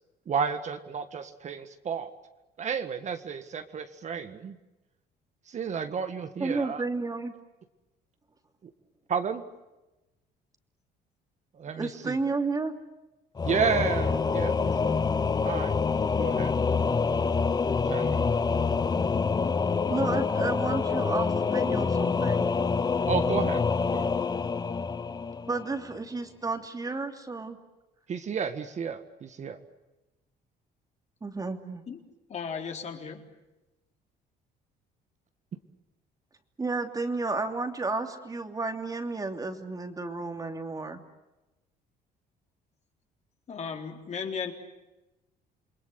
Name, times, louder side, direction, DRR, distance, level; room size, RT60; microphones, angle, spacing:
voice 1, 0.3-2.1 2.6-4.6 5.5-6.8 9.1-9.4 11.5-12.2 13.4-15.0 15.4-15.8 16.2-16.5 17.8-18.3 23.1-24.1 28.1-29.6, right 6 dB, 45° right, 9 dB, 1.8 m, -32 dB
voice 2, 6.4-7.3 11.7-12.7 19.9-22.5 25.5-27.6 31.2-31.8 36.6-41.0, right 3 dB, 20° right, 6 dB, 2.9 m, -32 dB
Singing / Musical instrument, 13.4-25.9, left 5 dB, 25° left, 0.9 m, -26 dB
voice 3, 32.3-33.2 43.5-44.5, left 6 dB, 40° left, 3 dB, 3.9 m, -35 dB
28.5 x 22.0 x 8.2 m, 1.0 s
cardioid pair, 110°, 17 cm